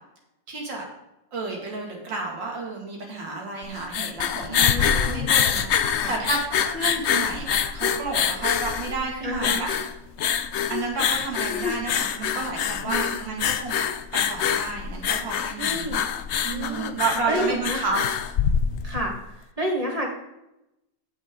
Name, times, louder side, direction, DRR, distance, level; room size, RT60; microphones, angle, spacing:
voice 1, 0.5-0.8 1.3-9.9 10.7-13.7 14.1-16.0 16.4-18.0, right 3 dB, 85° right, 0 dB, 2.9 m, -31 dB
sound 1, 3.6-19.1, left 8 dB, 80° left, 0.6 m, -25 dB
voice 2, 4.5-5.4 5.9-6.1 9.2-9.6 12.8-13.2 15.6-16.0 16.5-16.9 17.3-18.0 18.8-20.1, right 1 dB, 20° right, 0 dB, 1.6 m, -30 dB
15.0 x 6.0 x 3.7 m, 0.89 s
omnidirectional pair, 1.9 m